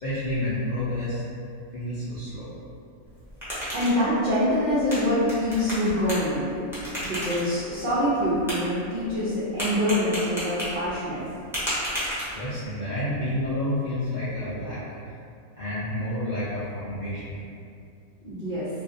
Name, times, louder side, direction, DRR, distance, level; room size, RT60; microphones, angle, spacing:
voice 1, 0.0-1.2 1.7-2.5 7.0-7.1 12.3-15.1 15.6-17.4, left 1 dB, 70° left, -11 dB, 0.4 m, -30 dB
sound 1, 3.1-12.7, equal, 5° right, 0.5 m, -34 dB
voice 2, 3.7-6.5 7.0-11.3 18.2-18.7, equal, 75° right, -10 dB, 0.4 m, -25 dB
2.5 x 2.3 x 2.4 m, 2.5 s
omnidirectional pair, 1.5 m